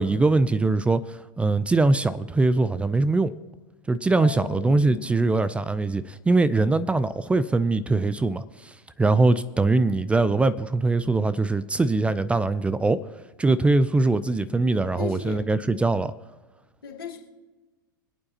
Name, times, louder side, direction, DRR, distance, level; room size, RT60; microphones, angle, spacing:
voice 1, 0.0-3.3 3.9-13.0 13.4-16.1, right 3 dB, 10° right, 0.4 m, -22 dB
voice 2, 4.2-5.1 15.0-15.5 16.8-17.2, left 7 dB, 85° left, 2.6 m, -36 dB
25.5 x 8.7 x 2.8 m
hypercardioid pair, 95°, 12 cm